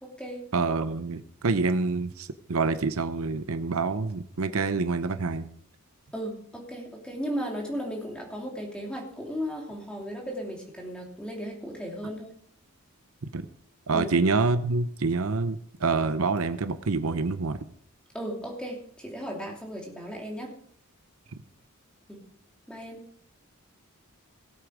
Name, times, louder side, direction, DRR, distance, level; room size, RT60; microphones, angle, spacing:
voice 1, 0.0-0.4 6.1-12.3 13.9-14.1 18.1-20.5 22.1-22.2 22.7-23.0, equal, 5° left, -1 dB, 2.9 m, -36 dB
voice 2, 0.5-5.5 13.3-13.4 13.9-17.6, right 4 dB, 75° right, 11 dB, 0.7 m, -27 dB
18.0 x 8.1 x 5.1 m, 0.63 s
head